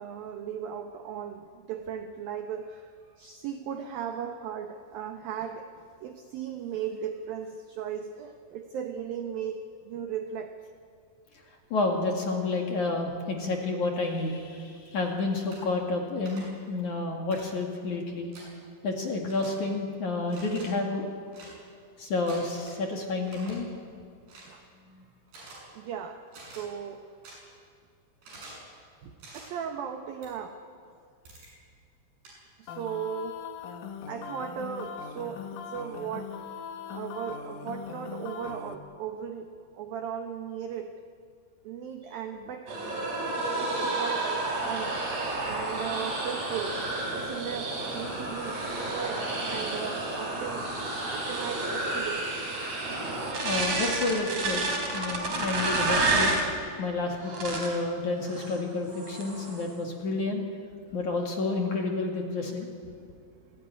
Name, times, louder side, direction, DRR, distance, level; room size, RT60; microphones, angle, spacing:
voice 1, 0.0-5.7 6.0-10.6 24.5-24.6 25.7-27.1 29.0-30.6 32.6-33.4 34.1-36.4 36.9-41.0 41.6-42.9 43.6-45.0 45.4-46.8 47.1-48.6 48.9-50.7 51.1-52.3 56.6-56.8 57.6-57.7, right 8 dB, 80° right, 5 dB, 2.1 m, -37 dB
voice 2, 11.7-18.3 18.8-21.0 22.0-23.7 53.4-54.6 54.9-56.3 56.8-60.4 60.9-62.7, left 3 dB, 50° left, 1 dB, 2.8 m, -30 dB
sound 1, 15.5-15.6 16.3-16.4 17.3-17.4 18.3-18.5 19.3-19.5 20.3-20.7 21.3-21.5 22.3-22.8 23.2-23.5 24.3-24.5 25.3-25.6 26.3-26.6 27.2-27.3 28.2-28.6 29.2-29.4 30.2-30.3 31.3-31.5 32.2-32.3, right 2 dB, 55° right, 9.8 m, -47 dB
sound 2, 32.7-38.8, left 6 dB, 75° left, 3.9 m, -40 dB
sound 3, 42.7-56.5 57.2-57.8 58.3-58.6 58.9-59.6, right 2 dB, 35° right, 4.8 m, -30 dB
28.5 x 16.5 x 10.0 m, 2.2 s
omnidirectional pair, 5.9 m